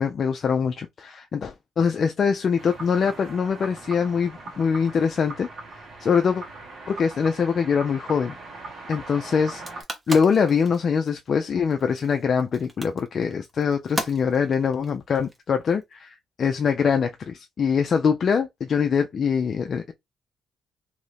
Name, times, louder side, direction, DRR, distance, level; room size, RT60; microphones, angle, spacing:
voice 1, 0.0-5.5 6.0-6.4 6.9-8.3 8.9-9.6 10.1-19.9, left 6 dB, 50° left, 0.4 m, -23 dB
sound 1, 2.6-9.8, right 2 dB, 60° right, 1.3 m, -40 dB
sound 2, 9.5-15.8, right 1 dB, 20° right, 1.0 m, -36 dB
2.7 x 2.5 x 3.3 m
cardioid pair, 90°, 0 cm